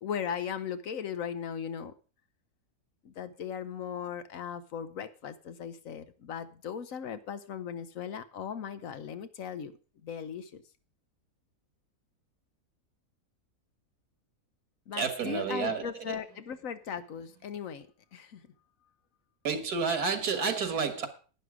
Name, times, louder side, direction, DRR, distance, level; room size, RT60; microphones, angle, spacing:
voice 1, 0.0-1.9 3.0-9.7 10.0-10.6 14.9-18.4, left 7 dB, 65° left, 1.2 m, -38 dB
voice 2, 14.9-16.2 19.4-21.1, right 5 dB, 85° right, 2.0 m, -30 dB
11.0 x 9.6 x 4.9 m
omnidirectional pair, 1.6 m